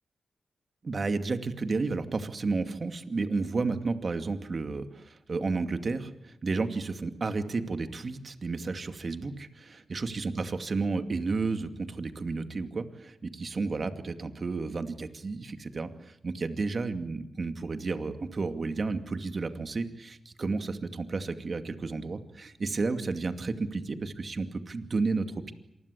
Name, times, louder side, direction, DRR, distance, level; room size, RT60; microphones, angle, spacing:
voice 1, 0.8-25.5, right 3 dB, 55° right, 8 dB, 2.4 m, -32 dB
27.0 x 20.5 x 8.4 m, 0.85 s
cardioid pair, 60°, 0 cm